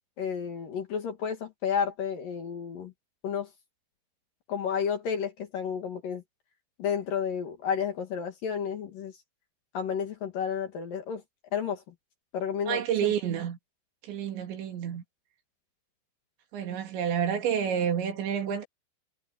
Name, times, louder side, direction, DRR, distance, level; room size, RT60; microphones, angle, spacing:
voice 1, 0.2-2.9 3.2-3.5 4.5-6.2 6.8-9.1 9.7-11.2 11.5-11.8 12.3-13.1, left 7 dB, 55° left, 3.2 m, -31 dB
voice 2, 12.7-13.6 14.0-15.0 16.5-18.6, right 8 dB, 70° right, 4.7 m, -29 dB
omnidirectional pair, 5.5 m